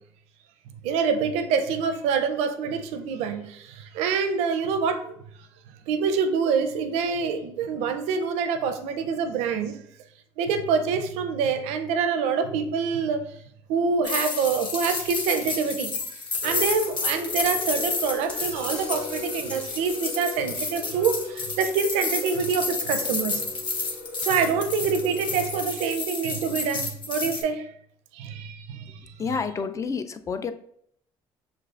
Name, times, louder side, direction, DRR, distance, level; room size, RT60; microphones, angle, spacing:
voice 1, 0.8-5.1 5.9-9.8 10.4-13.4 13.7-15.9 16.4-23.4 24.2-27.7 28.1-29.0, right 5 dB, 80° right, 0.5 m, -26 dB
coindrop-sample, 14.0-27.4, left 4 dB, 45° left, 1.1 m, -31 dB
sound 1, 15.0-16.0 16.3-16.8 18.3-21.1 21.9-23.1 24.1-24.4, left 1 dB, 10° left, 0.8 m, -46 dB
sound 2, 16.4-25.7, left 4 dB, 85° left, 1.1 m, -40 dB
voice 2, 29.2-30.5, left 5 dB, 30° left, 0.3 m, -29 dB
6.4 x 2.4 x 2.4 m
supercardioid pair, 90°, 11 cm